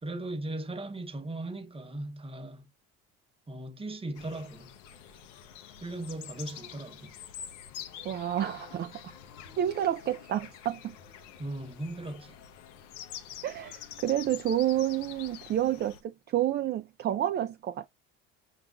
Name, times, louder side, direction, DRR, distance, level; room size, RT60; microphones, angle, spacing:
voice 1, 0.0-2.7 3.5-4.7 5.8-7.1 11.4-12.4, right 2 dB, 15° right, 0.9 m, -38 dB
sound 1, 4.2-16.0, left 9 dB, 90° left, 0.6 m, -46 dB
voice 2, 8.0-9.0 9.6-11.0 13.4-17.9, right 11 dB, 30° right, 0.4 m, -29 dB
5.7 x 2.4 x 2.3 m
supercardioid pair, 85°, 36 cm